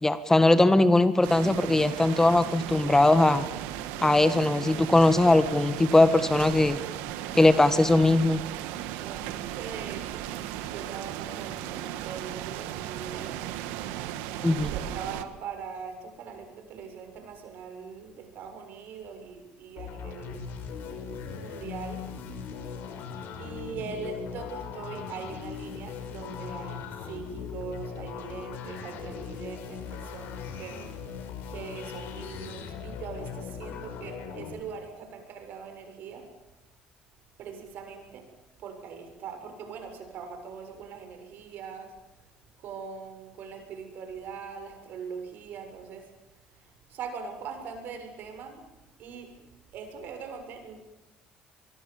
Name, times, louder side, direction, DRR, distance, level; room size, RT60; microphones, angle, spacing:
voice 1, 0.0-3.4 4.0-6.8 7.3-8.4 14.4-14.7, left 2 dB, 15° left, 12 dB, 1.7 m, -20 dB
sound 1, 1.2-15.2, right 12 dB, 85° right, 1.8 m, -36 dB
voice 2, 9.0-10.3 10.6-13.6 14.7-20.4 21.3-22.2 23.4-30.8 31.5-36.2 37.4-38.2 38.6-41.9 42.6-46.1 46.5-48.6 49.0-50.8, right 6 dB, 65° right, 5 dB, 7.0 m, -41 dB
sound 2, 19.8-34.5, left 6 dB, 75° left, 5.3 m, -39 dB
25.5 x 22.5 x 7.3 m, 0.99 s
supercardioid pair, 85°, 3 cm